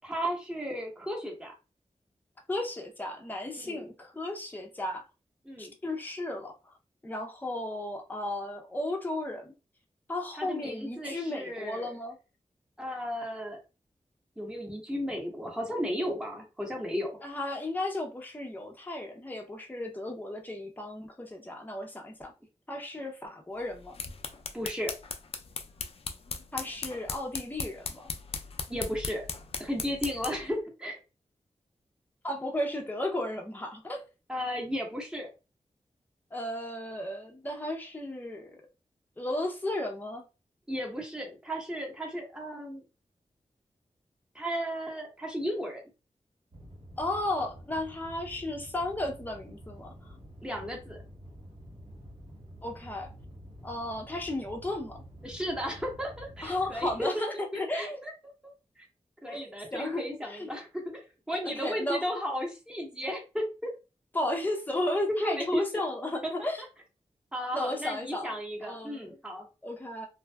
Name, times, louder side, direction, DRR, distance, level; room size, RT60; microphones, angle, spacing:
voice 1, 0.0-1.5 3.5-3.9 5.4-5.7 10.4-11.9 12.8-13.6 14.4-17.1 24.5-24.9 28.7-29.2 29.6-31.0 34.3-35.3 40.7-42.8 44.3-45.8 50.4-51.0 55.2-58.1 58.4-58.8 59.2-61.0 61.3-63.7 65.2-65.9 66.2-66.5 67.3-69.5, equal, 5° right, 1.0 m, -34 dB
voice 2, 2.5-5.0 5.6-6.7 7.0-9.5 10.1-12.2 17.2-22.3 22.7-24.0 26.5-28.1 32.2-34.0 36.3-38.6 39.2-40.3 47.0-49.9 52.6-53.1 53.6-55.0 56.4-58.0 59.3-60.5 61.4-62.1 64.1-66.6 67.5-68.3 68.7-69.1 69.6-70.1, left 1 dB, 15° left, 0.6 m, -34 dB
sound 1, 23.7-30.5, left 4 dB, 50° left, 0.3 m, -38 dB
sound 2, 46.5-57.1, equal, 60° right, 1.4 m, -49 dB
2.6 x 2.2 x 2.2 m
wide cardioid pair, 65°, 12 cm